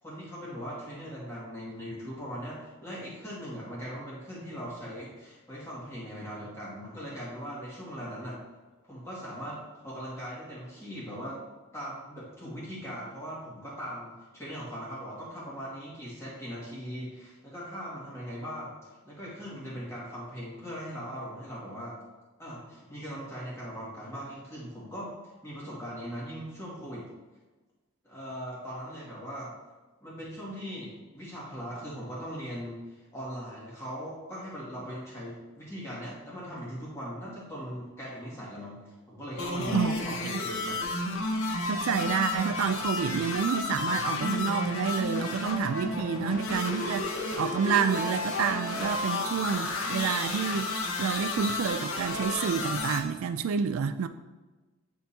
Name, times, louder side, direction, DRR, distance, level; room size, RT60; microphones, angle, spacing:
voice 1, 0.0-8.4 8.9-11.4 11.7-22.0 22.4-25.1 25.4-27.1 28.0-29.5 30.0-40.9, equal, 15° left, 2.0 m, -40 dB
sound 1, 39.4-53.0, left 2 dB, 70° left, 0.8 m, -32 dB
voice 2, 41.7-54.1, right 6 dB, 75° right, 0.3 m, -29 dB
9.3 x 3.8 x 2.8 m
head